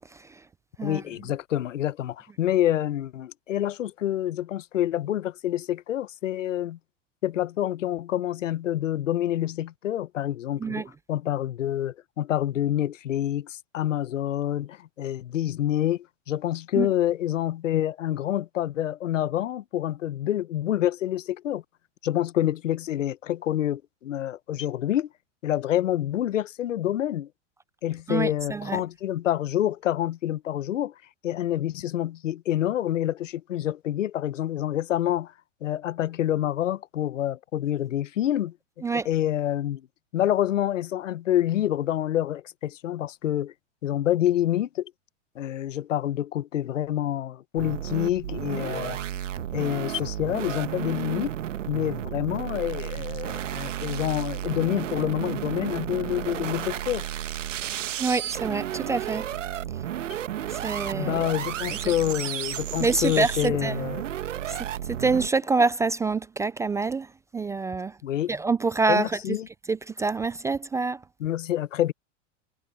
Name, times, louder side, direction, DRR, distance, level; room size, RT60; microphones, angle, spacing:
voice 1, 0.8-6.8 7.2-21.6 22.0-25.1 25.4-27.3 27.8-30.9 31.2-35.3 35.6-38.5 39.0-39.8 40.1-43.5 43.8-44.9 45.4-49.0 49.5-51.4 51.7-57.1 61.0-64.0 68.0-68.3 68.9-69.5 71.2-71.9, left 12 dB, 90° left, 1.0 m, -27 dB
voice 2, 28.1-28.8 38.8-39.1 58.0-59.3 60.6-61.2 62.8-63.8 64.9-67.1 67.3-67.9 68.3-69.1 69.7-71.0, right 4 dB, 10° right, 0.3 m, -26 dB
sound 1, 47.6-65.3, right 11 dB, 90° right, 1.4 m, -32 dB
hypercardioid pair, 110°, 36 cm